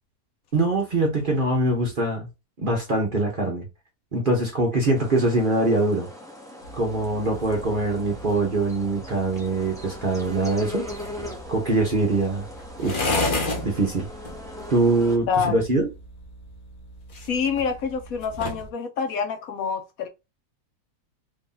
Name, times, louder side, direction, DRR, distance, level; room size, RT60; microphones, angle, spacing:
voice 1, 0.5-2.3 2.6-3.7 4.1-6.1 6.8-10.9 11.5-12.4 12.8-13.1 13.6-14.1 14.7-15.9, right 2 dB, 45° right, 0.8 m, -23 dB
sound 1, 4.9-15.2, left 1 dB, 5° left, 0.6 m, -40 dB
sound 2, 6.6-18.7, left 2 dB, 40° left, 0.8 m, -34 dB
voice 2, 15.3-15.6 17.3-20.1, left 6 dB, 70° left, 1.0 m, -27 dB
3.1 x 2.6 x 3.7 m
omnidirectional pair, 1.7 m